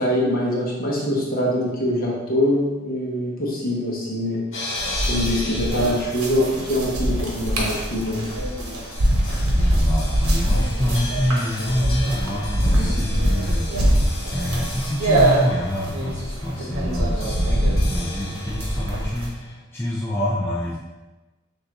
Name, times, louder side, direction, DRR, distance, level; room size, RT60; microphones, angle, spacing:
voice 1, 0.0-4.4 5.1-8.3, left 1 dB, 40° left, -4 dB, 1.1 m, -23 dB
sound 1, 4.5-19.5, left 1 dB, 60° left, 1.5 m, -36 dB
sound 2, 4.8-19.3, right 1 dB, 85° right, 1.1 m, -23 dB
voice 2, 9.6-20.8, equal, 10° left, -7 dB, 0.4 m, -27 dB
6.5 x 2.6 x 2.9 m, 1.1 s
head